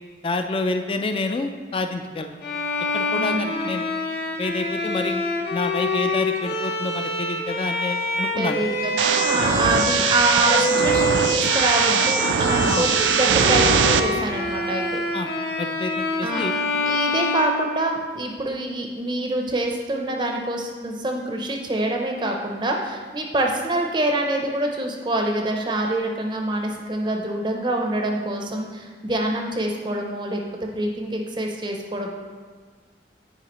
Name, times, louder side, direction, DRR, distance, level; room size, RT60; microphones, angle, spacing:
voice 1, 0.2-2.4 2.9-3.9 4.4-5.2 5.5-8.6 12.7-12.9 15.1-15.3 15.6-16.5, left 3 dB, 30° left, 6 dB, 0.3 m, -28 dB
Bowed string instrument, 2.4-18.3, left 2 dB, 60° left, 0.7 m, -26 dB
voice 2, 3.2-3.5 8.4-15.0 16.2-16.5 16.9-32.1, right 1 dB, 25° right, 1 dB, 0.5 m, -25 dB
sound 1, 9.0-14.0, right 7 dB, 90° right, 0.4 m, -21 dB
9.1 x 4.7 x 2.9 m, 1.5 s
head